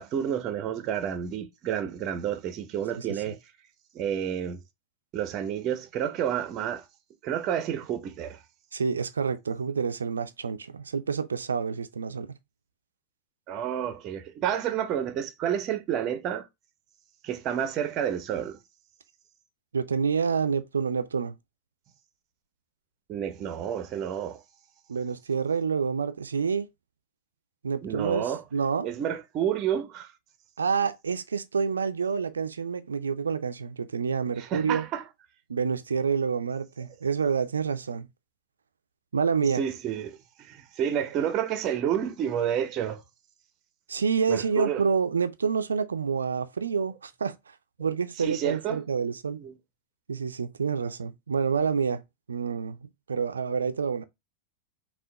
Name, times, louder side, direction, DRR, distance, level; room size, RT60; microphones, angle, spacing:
voice 1, 0.0-3.4 3.9-4.6 5.1-6.8 7.2-8.4 13.5-16.5 17.2-18.6 23.1-24.4 27.8-28.4 28.8-30.1 34.4-35.0 39.5-43.0 44.3-44.8 48.2-48.8 49.3-49.6, right 9 dB, 35° right, 0.7 m, -30 dB
voice 2, 3.0-3.3 8.7-12.3 19.7-21.3 24.9-26.7 27.6-28.9 30.6-34.8 35.5-38.1 39.1-39.6 43.9-47.3 47.8-49.4 50.1-52.0 52.3-54.0, right 6 dB, 70° right, 0.5 m, -28 dB
5.6 x 2.5 x 3.6 m
figure-of-eight pair, 90°, 0 cm